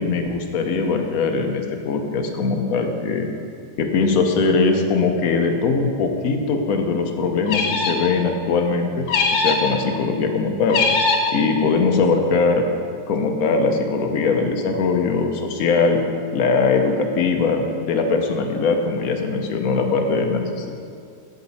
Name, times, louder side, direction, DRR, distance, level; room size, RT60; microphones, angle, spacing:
voice 1, 0.0-3.3 3.8-9.1 9.3-10.8 11.3-12.7 13.1-16.0 16.3-20.7, left 4 dB, 60° left, 4 dB, 1.1 m, -21 dB
sound 1, 7.5-8.1 9.1-9.7 10.7-11.4, left 4 dB, 80° left, 1.6 m, -21 dB
15.5 x 5.2 x 4.1 m, 2.4 s
omnidirectional pair, 2.0 m